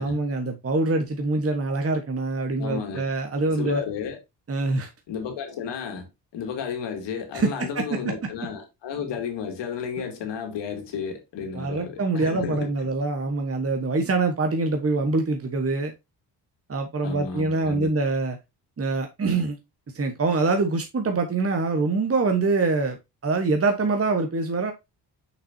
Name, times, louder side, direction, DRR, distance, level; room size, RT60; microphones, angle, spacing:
voice 1, 0.0-3.8 4.5-4.9 7.3-7.8 11.5-15.9 16.7-18.4 18.8-19.6 19.9-23.0 23.2-24.7, right 3 dB, 35° right, 1.3 m, -24 dB
voice 2, 2.6-3.1 3.5-4.2 5.1-12.9 17.0-17.9, left 6 dB, 80° left, 2.3 m, -33 dB
6.5 x 5.8 x 2.7 m
cardioid pair, 65°, 42 cm